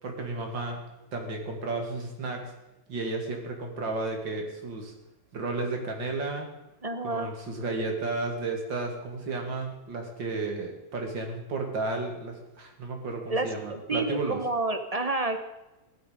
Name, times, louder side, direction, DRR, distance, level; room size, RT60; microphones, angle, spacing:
voice 1, 0.0-0.8 1.1-2.5 2.9-4.9 5.3-6.5 7.0-14.4, right 3 dB, 80° right, 3 dB, 3.2 m, -33 dB
voice 2, 6.8-7.3 13.3-15.4, right 2 dB, 25° right, 7 dB, 1.0 m, -29 dB
16.0 x 12.0 x 5.2 m, 0.97 s
omnidirectional pair, 2.0 m